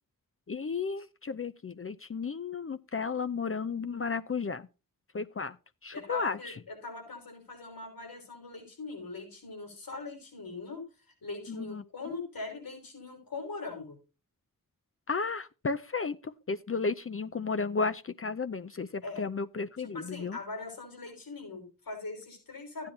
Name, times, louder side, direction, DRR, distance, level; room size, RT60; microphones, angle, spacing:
voice 1, 0.5-4.7 5.1-5.6 5.8-6.5 11.5-11.8 15.1-20.4 22.8-22.9, left 4 dB, 40° left, 0.6 m, -33 dB
voice 2, 5.9-10.8 11.2-14.0 19.0-19.2 19.8-22.9, left 3 dB, 85° left, 5.8 m, -41 dB
15.0 x 9.8 x 2.8 m
wide cardioid pair, 100°, 34 cm